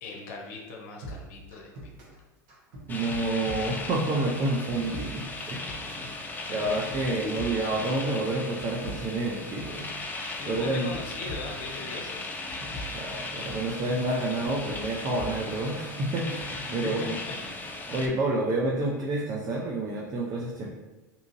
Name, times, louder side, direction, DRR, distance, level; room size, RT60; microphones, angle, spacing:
voice 1, 0.0-1.9 6.0-6.1 7.2-7.3 10.4-12.3 16.7-17.4, left 3 dB, 65° left, 0 dB, 0.6 m, -39 dB
sound 1, 1.0-2.2 2.5-4.1 4.4-6.1 6.4-8.0 8.3-10.0 10.3-11.9 12.2-13.9 14.2-15.8 16.1-16.6, equal, 65° right, 1.0 m, -42 dB
sound 2, 2.9-18.1, left 2 dB, 20° left, 0.4 m, -37 dB
voice 2, 2.9-5.7 6.5-9.9 10.5-10.9 12.9-17.2 17.9-20.7, right 2 dB, 40° right, -2 dB, 0.5 m, -29 dB
2.8 x 2.5 x 2.6 m, 1.1 s
hypercardioid pair, 90°, 10 cm